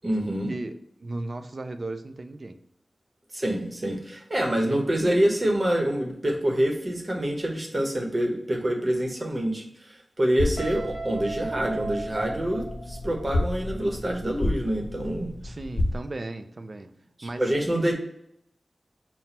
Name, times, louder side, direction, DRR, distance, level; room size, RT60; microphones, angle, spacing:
voice 1, 0.0-0.5 3.3-15.3 17.2-17.9, right 1 dB, 40° right, 2 dB, 0.9 m, -26 dB
voice 2, 1.0-2.6 4.6-4.8 15.4-16.9 17.2-17.5, right 2 dB, 55° right, 8 dB, 0.4 m, -35 dB
sound 1, 10.4-16.0, left 1 dB, 70° left, 0.5 m, -31 dB
Guitar, 10.6-13.4, right 3 dB, 30° left, 1.2 m, -35 dB
4.1 x 2.2 x 4.1 m, 0.77 s
cardioid pair, 45°, 0 cm